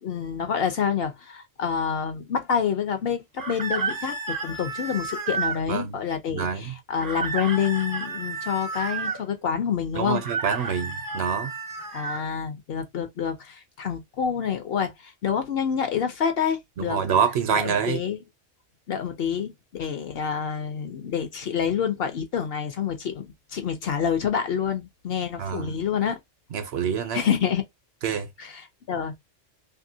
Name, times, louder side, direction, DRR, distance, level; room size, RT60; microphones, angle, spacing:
voice 1, 0.0-10.2 11.9-17.0 17.5-18.2 18.9-26.2 27.1-27.6 28.4-29.1, left 7 dB, 60° left, 0.7 m, -27 dB
sound 1, 3.4-5.6 7.0-9.2 10.1-12.2, right 4 dB, 30° right, 0.4 m, -31 dB
voice 2, 6.3-6.8 9.9-11.5 16.8-18.0 25.4-25.7 26.5-27.2 28.0-28.3, right 7 dB, 65° right, 0.8 m, -26 dB
2.7 x 2.7 x 2.6 m
omnidirectional pair, 1.2 m